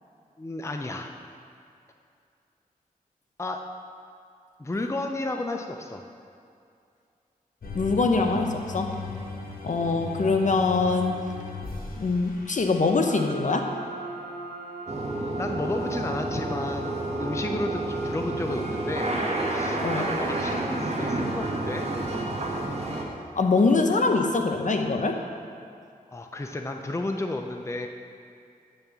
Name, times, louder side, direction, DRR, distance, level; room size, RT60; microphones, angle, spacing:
voice 1, 0.4-1.1 3.4-3.6 4.6-6.0 15.4-19.1 19.4-21.9 26.1-27.9, left 2 dB, 20° left, 4 dB, 0.5 m, -32 dB
sound 1, 7.6-14.0, left 3 dB, 70° left, 1.1 m, -38 dB
voice 2, 7.7-9.0 9.6-11.2 11.9-13.7 19.8-20.1 23.4-25.3, left 3 dB, 55° left, 4 dB, 0.7 m, -23 dB
sound 2, 13.1-22.6, right 2 dB, 85° right, 1.0 m, -39 dB
sound 3, 14.9-23.0, right 2 dB, 45° right, 1.2 m, -30 dB
8.9 x 3.5 x 6.8 m, 2.4 s
cardioid pair, 55°, 15 cm